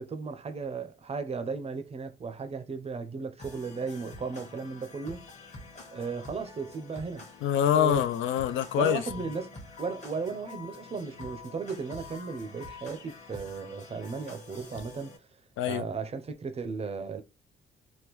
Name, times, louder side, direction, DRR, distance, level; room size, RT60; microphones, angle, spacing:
voice 1, 0.0-5.5 5.9-7.3 7.7-8.1 8.7-15.2 15.6-17.2, right 4 dB, 30° right, 0.5 m, -35 dB
sound 1, 3.4-15.2, left 3 dB, 35° left, 1.1 m, -47 dB
voice 2, 7.4-9.0 15.6-15.8, left 10 dB, 80° left, 0.4 m, -25 dB
3.5 x 2.2 x 2.9 m
cardioid pair, 90°, 20 cm